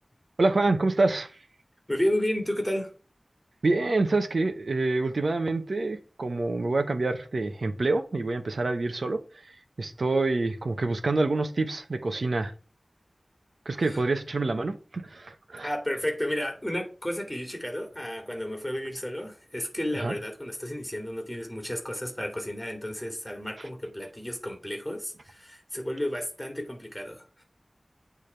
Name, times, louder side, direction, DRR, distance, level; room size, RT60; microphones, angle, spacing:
voice 1, 0.4-1.3 3.6-9.2 9.8-12.5 13.7-15.7 20.0-20.1, right 3 dB, 85° right, 0.8 m, -26 dB
voice 2, 1.9-2.9 13.9-14.0 15.6-27.4, left 1 dB, 10° left, 2.5 m, -32 dB
8.6 x 3.5 x 4.4 m
wide cardioid pair, 50°, 0 cm